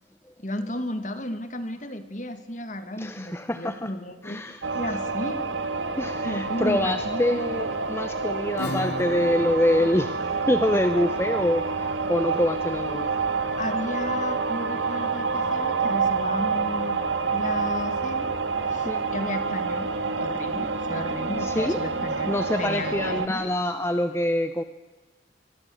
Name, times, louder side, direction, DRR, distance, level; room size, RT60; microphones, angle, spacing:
voice 1, 0.4-5.4 6.2-7.4 13.6-17.0 17.3-18.3 18.7-19.9 20.2-23.5, left 1 dB, 40° left, 9 dB, 2.0 m, -33 dB
voice 2, 3.0-3.9 4.2-4.6 5.9-10.2 10.5-13.1 18.7-19.0 21.4-21.8 22.3-24.6, left 1 dB, 15° left, 9 dB, 0.7 m, -25 dB
sound 1, 4.6-23.3, right 4 dB, 85° right, 2.0 m, -28 dB
Acoustic guitar / Strum, 8.6-13.9, left 1 dB, 60° left, 1.1 m, -39 dB
24.5 x 21.5 x 7.9 m, 1.3 s
head